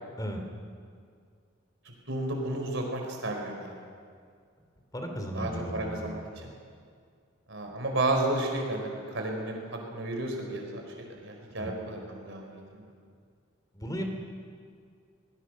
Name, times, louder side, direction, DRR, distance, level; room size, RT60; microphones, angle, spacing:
voice 1, 2.1-3.8 5.3-6.5 7.5-12.8, right 2 dB, 65° right, 2 dB, 4.7 m, -32 dB
voice 2, 4.9-6.2 11.6-11.7 13.7-14.0, equal, 20° left, 4 dB, 2.8 m, -35 dB
22.5 x 20.0 x 6.4 m, 2.1 s
head